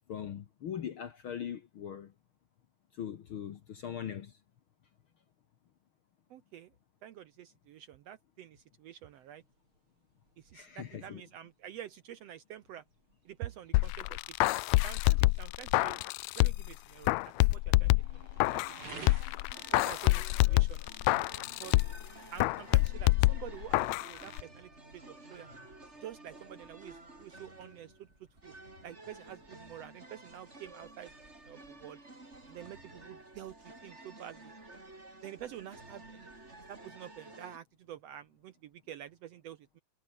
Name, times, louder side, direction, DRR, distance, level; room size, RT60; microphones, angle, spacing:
voice 1, 0.1-2.1 2.9-4.4 10.5-11.2, left 9 dB, 55° left, 1.5 m, -40 dB
voice 2, 6.3-6.7 7.0-9.4 10.4-12.8 13.2-14.2 14.8-16.0 16.3-19.1 19.7-20.9 21.6-21.8 22.3-25.5 26.0-28.1 28.4-28.5 28.8-31.1 31.5-32.0 32.5-34.5 35.2-36.3 36.7-39.8, right 11 dB, 70° right, 1.6 m, -48 dB
sound 1, 9.0-24.5, right 3 dB, 40° right, 6.5 m, -56 dB
sound 2, 13.7-16.7 17.1-18.8 19.1-22.1 22.4-24.1 24.4-24.5, left 21 dB, 85° left, 1.6 m, -27 dB
sound 3, 19.5-37.6, right 2 dB, 20° right, 4.8 m, -52 dB
omnidirectional pair, 3.7 m